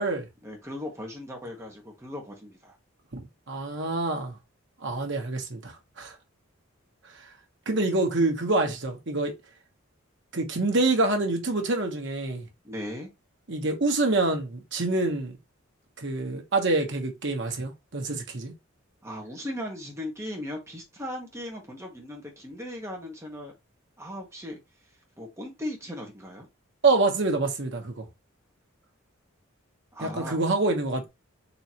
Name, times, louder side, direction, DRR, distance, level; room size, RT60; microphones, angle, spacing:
voice 1, 0.4-2.7 12.6-13.1 19.0-23.5 24.0-24.6 25.2-26.5 29.9-30.4, left 1 dB, 15° right, 1.2 m, -37 dB
voice 2, 3.1-4.3 4.8-6.2 7.7-9.3 10.3-12.5 13.5-15.4 16.0-18.5 26.8-28.1 30.0-31.1, right 2 dB, 55° right, 1.1 m, -26 dB
4.1 x 3.1 x 2.9 m
head